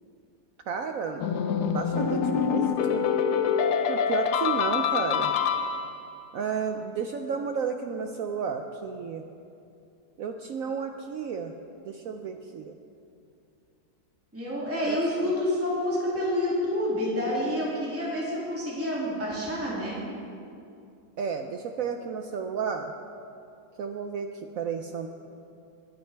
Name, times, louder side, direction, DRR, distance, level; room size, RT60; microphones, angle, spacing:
voice 1, 0.7-1.2 1.7-3.1 3.9-5.3 6.3-9.2 10.2-11.5 11.8-12.8 14.9-15.0 21.2-22.9 23.8-24.3 24.5-25.1, right 6 dB, 70° right, 5 dB, 0.8 m, -32 dB
sound 1, 1.2-6.1, left 7 dB, 70° left, 1.1 m, -26 dB
voice 2, 14.3-20.0, left 1 dB, 5° right, -6 dB, 2.3 m, -28 dB
20.5 x 9.6 x 3.4 m, 2.5 s
omnidirectional pair, 2.0 m